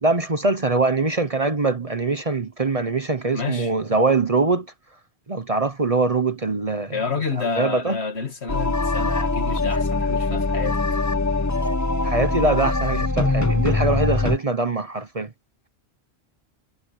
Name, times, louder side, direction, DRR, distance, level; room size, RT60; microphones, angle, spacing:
voice 1, 0.0-4.7 5.3-6.9 7.4-8.0 12.0-15.3, right 3 dB, 35° right, 1.0 m, -23 dB
voice 2, 3.3-3.7 6.9-10.8, left 5 dB, 70° left, 2.3 m, -29 dB
sound 1, 8.5-14.4, left 3 dB, 15° left, 0.8 m, -22 dB
omnidirectional pair, 1.1 m